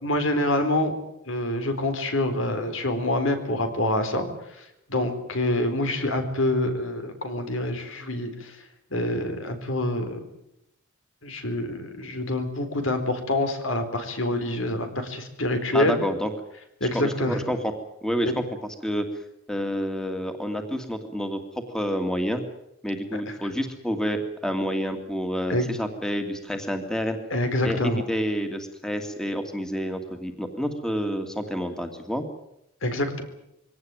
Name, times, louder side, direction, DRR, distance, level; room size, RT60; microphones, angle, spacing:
voice 1, 0.0-0.9 1.3-4.3 4.6-8.6 8.9-10.2 11.2-16.0 16.8-17.4 18.2-18.3 25.5-25.7 27.3-28.0 32.8-33.2, left 1 dB, 75° left, 7 dB, 4.2 m, -26 dB
voice 2, 15.7-16.3 16.9-17.6 18.0-19.1 19.5-21.4 21.7-22.4 22.8-27.2 27.6-32.2, equal, 5° left, 5 dB, 2.4 m, -28 dB
23.5 x 18.0 x 9.2 m, 0.82 s
head